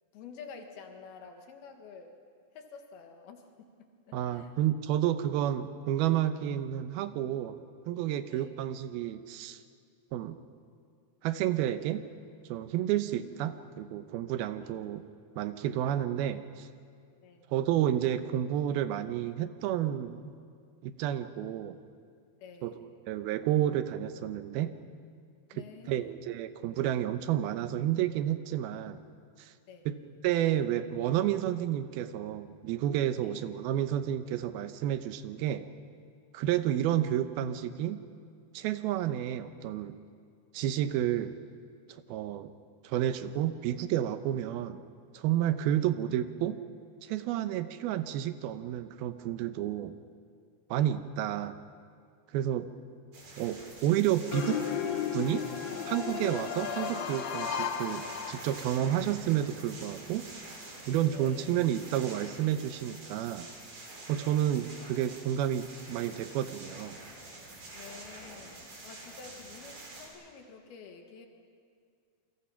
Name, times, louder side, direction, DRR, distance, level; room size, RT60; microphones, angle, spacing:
voice 1, 0.1-2.1 2.6-4.5 8.3-8.5 17.2-17.5 22.4-22.9 25.5-26.1 29.7-29.9 33.2-33.4 45.7-45.8 50.7-50.9 61.1-61.6 64.2-64.6 67.8-68.5 68.8-71.3, left 5 dB, 85° left, 4 dB, 3.7 m, -50 dB
voice 2, 4.1-7.6 7.9-9.6 10.1-10.4 11.2-12.0 12.5-15.0 15.4-16.7 17.5-20.3 20.8-21.8 22.6-22.7 23.1-24.7 25.6-29.0 29.4-29.5 29.9-30.0 30.2-35.7 36.3-38.0 38.5-40.0 40.5-41.4 42.1-42.5 42.8-44.8 45.1-46.6 47.0-49.9 50.7-51.6 52.3-52.7 53.4-54.6 55.1-55.5 55.9-60.3 60.9-63.5 64.1-67.0, right 11 dB, 90° right, 11 dB, 2.8 m, -30 dB
sound 1, 53.1-70.1, right 2 dB, 60° right, 5.4 m, -47 dB
sound 2, 54.3-58.9, left 7 dB, 65° left, 1.8 m, -34 dB
28.5 x 23.0 x 5.8 m, 2.2 s
omnidirectional pair, 4.3 m